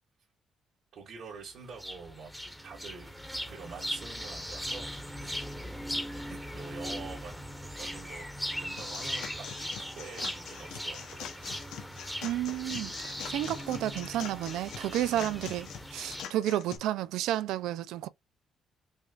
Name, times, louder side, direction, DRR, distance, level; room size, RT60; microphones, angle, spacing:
voice 1, 0.9-2.3 2.6-7.3 7.8-8.3 8.6-11.3 15.0-15.4, right 5 dB, 70° right, 1.8 m, -47 dB
sound 1, 1.7-16.2, equal, ahead, 1.1 m, -39 dB
sound 2, 8.8-16.8, left 8 dB, 85° left, 0.8 m, -44 dB
voice 2, 12.2-18.1, right 13 dB, 90° right, 0.3 m, -31 dB
5.3 x 2.4 x 2.4 m
cardioid pair, 90°, 0 cm